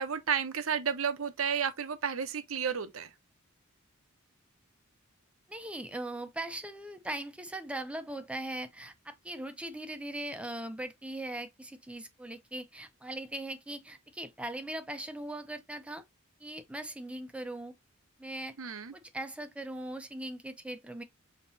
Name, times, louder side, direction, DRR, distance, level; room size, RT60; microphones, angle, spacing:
voice 1, 0.0-3.1 18.6-18.9, right 7 dB, 65° right, 0.7 m, -32 dB
voice 2, 5.5-16.0 16.4-17.7 18.2-21.0, right 1 dB, 5° right, 0.5 m, -40 dB
5.5 x 2.9 x 2.6 m
head